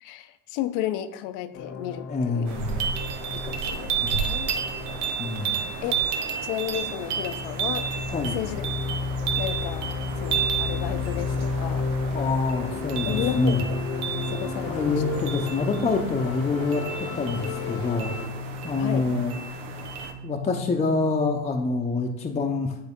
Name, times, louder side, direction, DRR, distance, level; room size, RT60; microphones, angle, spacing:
voice 1, 0.0-2.6 3.3-4.5 5.4-6.0 6.4-7.9 8.1-9.0 9.4-9.9 10.2-11.9 12.7-13.8 14.3-15.0 18.8-19.1, left 12 dB, 65° left, 10 dB, 0.8 m, -33 dB
sound 1, 1.5-18.3, left 4 dB, 40° left, 1.0 m, -32 dB
voice 2, 2.1-2.9 4.0-4.3 5.2-5.6 8.1-8.4 12.1-13.6 14.7-18.1 18.6-19.3 20.2-22.7, left 3 dB, 20° left, 1 dB, 0.7 m, -26 dB
sound 2, 2.5-20.1, right 7 dB, 85° right, 1.0 m, -32 dB
sound 3, 14.1-21.6, left 4 dB, 50° right, 1.9 m, -40 dB
9.7 x 3.5 x 3.6 m, 0.87 s
supercardioid pair, 90°, 36 cm